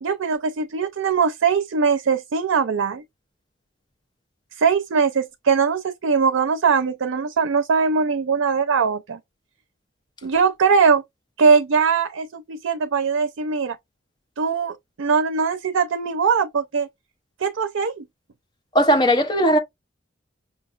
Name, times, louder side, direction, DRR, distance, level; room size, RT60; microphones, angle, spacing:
voice 1, 0.0-3.0 4.6-9.2 10.2-11.0 11.4-13.8 14.4-16.9 17.4-18.0, right 5 dB, 90° right, 0.5 m, -21 dB
voice 2, 18.7-19.6, equal, 20° left, 0.8 m, -17 dB
6.1 x 2.3 x 2.4 m
head